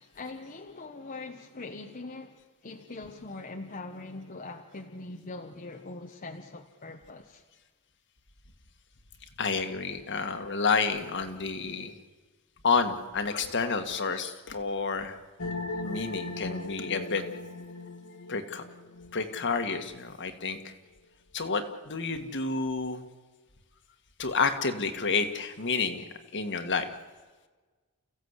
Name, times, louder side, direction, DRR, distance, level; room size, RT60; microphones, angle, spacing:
voice 1, 0.0-7.4, left 3 dB, 40° left, 1.1 m, -42 dB
voice 2, 9.4-11.9 12.6-15.2 15.8-17.2 18.3-18.6 19.1-20.7 21.3-23.0 24.2-26.1 26.3-26.9, left 4 dB, 55° left, 1.8 m, -29 dB
sound 1, 15.4-19.8, left 2 dB, 75° left, 1.5 m, -38 dB
29.5 x 15.5 x 8.2 m
head